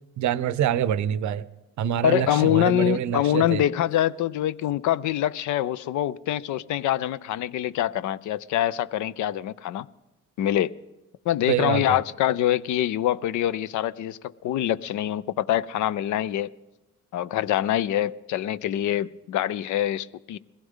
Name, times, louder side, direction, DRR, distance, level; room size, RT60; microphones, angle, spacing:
voice 1, 0.2-1.5 1.8-3.6 11.5-12.0, right 10 dB, 70° right, 16 dB, 0.6 m, -25 dB
voice 2, 2.0-9.9 10.4-10.7 11.3-16.5 17.1-20.4, left 12 dB, 75° left, 18 dB, 0.5 m, -25 dB
21.0 x 16.0 x 3.7 m, 1.0 s
cardioid pair, 90°, 30 cm